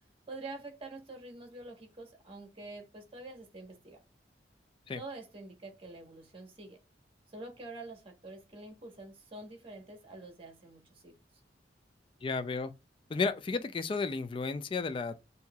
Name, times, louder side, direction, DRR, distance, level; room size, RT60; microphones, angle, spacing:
voice 1, 0.3-4.0 5.0-6.8 7.3-11.2, right 2 dB, 30° right, 1.1 m, -46 dB
voice 2, 12.2-12.7 13.1-15.2, left 4 dB, 30° left, 0.3 m, -33 dB
5.5 x 2.7 x 2.3 m
head